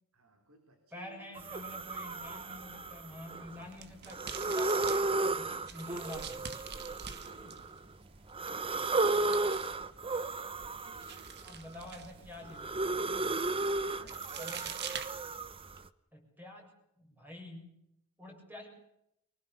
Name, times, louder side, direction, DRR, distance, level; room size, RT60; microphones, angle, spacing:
voice 1, 0.1-1.7 3.3-4.1 7.1-9.8 10.8-11.3 13.9-14.4, right 2 dB, 70° right, 4 dB, 4.0 m, -61 dB
voice 2, 0.9-6.4 7.3-7.6 9.2-9.3 11.4-13.3 14.4-14.9 16.1-17.7 18.2-18.7, left 1 dB, 10° right, 2 dB, 7.1 m, -48 dB
sound 1, 1.4-3.6 4.1-7.8 8.3-11.5 11.9-15.8, right 3 dB, 25° right, 0.8 m, -34 dB
sound 2, 3.5-15.8, right 7 dB, 50° right, 1.6 m, -48 dB
25.0 x 19.5 x 6.9 m, 0.79 s
head